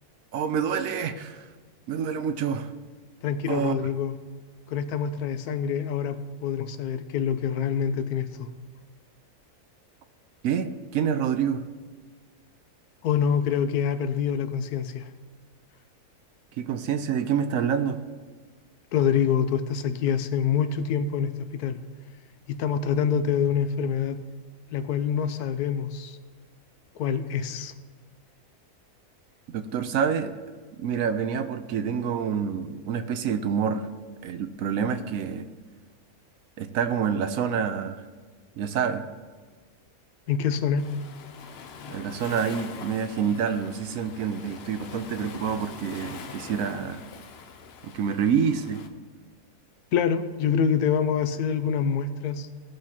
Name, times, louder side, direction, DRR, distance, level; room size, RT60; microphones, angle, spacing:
voice 1, 0.3-1.4 1.9-2.7 3.5-3.8 10.4-11.6 16.6-18.0 29.5-30.3 30.8-33.9 34.2-35.5 36.6-38.0 38.6-39.0 41.9-47.0 47.9-48.8, right 7 dB, 70° right, 9 dB, 1.0 m, -27 dB
voice 2, 3.2-4.1 4.7-6.2 6.4-8.5 13.0-15.1 18.9-21.8 22.5-24.2 24.7-26.2 27.0-27.7 40.3-40.9 49.9-52.5, left 7 dB, 85° left, 11 dB, 1.2 m, -26 dB
Waves surf, 40.8-48.9, left 5 dB, 55° left, 0.8 m, -43 dB
17.5 x 6.4 x 2.9 m, 1.4 s
omnidirectional pair, 1.6 m